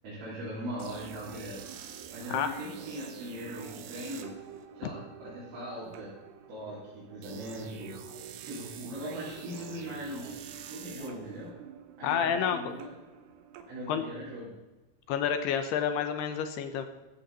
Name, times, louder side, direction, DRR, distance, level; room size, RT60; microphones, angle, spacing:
voice 1, 0.0-1.6 2.1-4.3 4.7-6.1 6.5-8.0 8.4-10.4 10.6-11.6 12.0-12.9 13.7-14.5, equal, 60° right, -9 dB, 5.9 m, -40 dB
sound 1, 0.8-14.5, right 8 dB, 80° right, 3.2 m, -46 dB
voice 2, 12.0-12.7 13.9-14.0 15.1-16.9, left 8 dB, 75° left, 8 dB, 2.9 m, -29 dB
14.5 x 14.0 x 4.3 m, 1.1 s
omnidirectional pair, 5.0 m